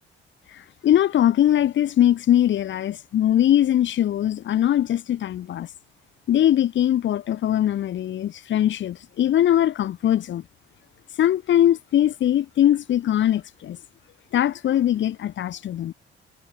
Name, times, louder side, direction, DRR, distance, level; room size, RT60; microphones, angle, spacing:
voice 1, 0.8-5.7 6.3-10.4 11.2-13.8 14.3-15.9, left 11 dB, 70° left, 2.4 m, -21 dB
cardioid pair, 90°, 20 cm